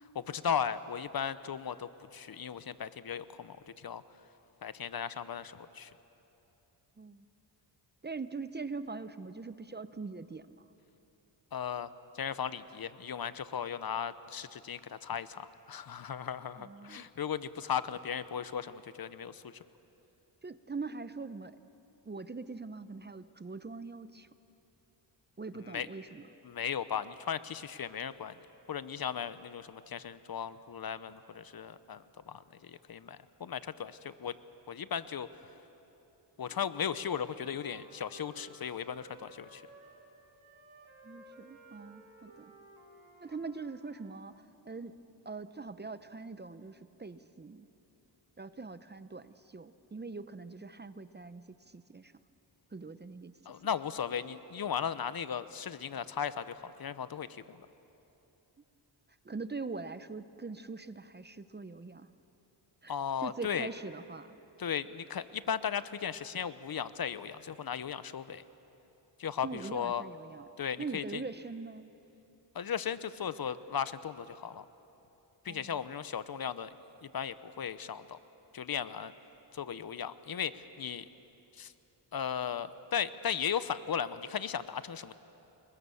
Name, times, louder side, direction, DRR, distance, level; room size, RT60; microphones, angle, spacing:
voice 1, 0.1-4.0 4.6-5.9 11.5-19.6 25.7-25.9 26.4-28.3 28.7-34.4 34.7-35.3 36.4-39.6 53.5-57.6 62.9-63.7 64.6-68.4 69.2-70.0 70.6-71.2 72.5-74.7 75.4-76.7 77.0-78.2 78.5-79.1 79.5-81.0 81.5-81.7 82.1-85.1, left 8 dB, 50° left, 14 dB, 0.9 m, -36 dB
voice 2, 8.0-10.6 16.6-17.1 20.4-21.6 22.0-24.3 25.4-26.2 41.0-42.5 43.2-47.7 48.4-52.1 52.7-53.4 59.2-62.1 62.8-62.9 63.2-64.4 69.4-70.5 70.8-71.9 75.5-75.8, right 4 dB, 20° right, 13 dB, 0.7 m, -42 dB
Wind instrument woodwind instrument, 36.3-40.1 40.4-44.2, right 2 dB, 85° right, 3.9 m, -57 dB
30.0 x 22.0 x 7.1 m, 3.0 s
cardioid pair, 85°, 46 cm